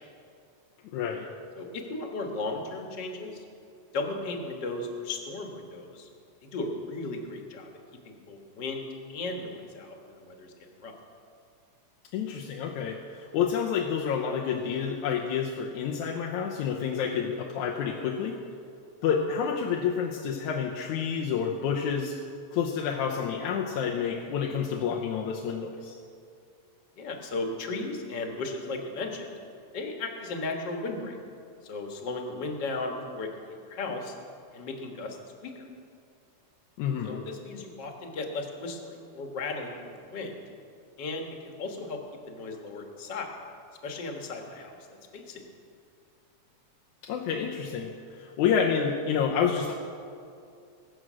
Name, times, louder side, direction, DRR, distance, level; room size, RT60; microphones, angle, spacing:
voice 1, 0.9-1.3 12.1-18.4 19.0-22.2 22.5-26.0 36.8-37.2 47.0-49.7, left 7 dB, 85° left, -1 dB, 2.3 m, -29 dB
voice 2, 1.6-3.4 3.9-6.1 6.4-7.7 8.1-10.5 10.8-10.9 27.0-29.4 29.7-31.2 31.6-33.3 33.7-34.1 34.5-35.2 35.4-35.6 37.0-40.4 41.0-41.3 41.6-42.0 42.3-43.3 43.8-44.8 45.1-45.4, left 3 dB, 45° left, 2 dB, 1.8 m, -35 dB
21.0 x 7.8 x 6.2 m, 2.4 s
omnidirectional pair, 3.3 m